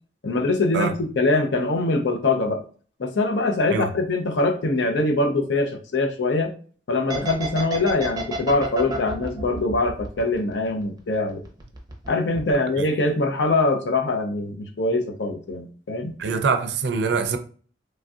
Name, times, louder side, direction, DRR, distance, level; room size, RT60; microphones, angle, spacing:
voice 1, 0.2-2.6 3.0-6.5 6.9-11.4 12.1-16.1, left 2 dB, 85° left, 0.5 m, -23 dB
sound 1, 7.1-10.8 11.1-12.1 12.3-12.5, right 3 dB, 25° right, 0.6 m, -30 dB
voice 2, 16.2-17.4, right 5 dB, 70° right, 0.4 m, -24 dB
3.1 x 2.6 x 2.3 m
head